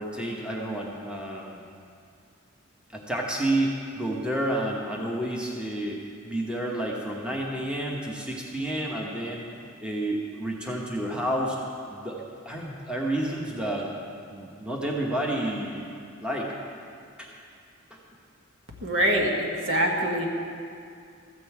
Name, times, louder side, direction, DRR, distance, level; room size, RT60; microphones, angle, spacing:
voice 1, 0.0-1.6 2.9-9.5 9.8-11.6 11.9-13.9 14.3-15.9 16.2-16.5 17.2-17.3 17.9-18.0, right 1 dB, 5° right, -2 dB, 1.1 m, -30 dB
voice 2, 18.8-20.3, equal, 65° right, 0 dB, 1.5 m, -24 dB
14.0 x 5.4 x 8.0 m, 2.3 s
head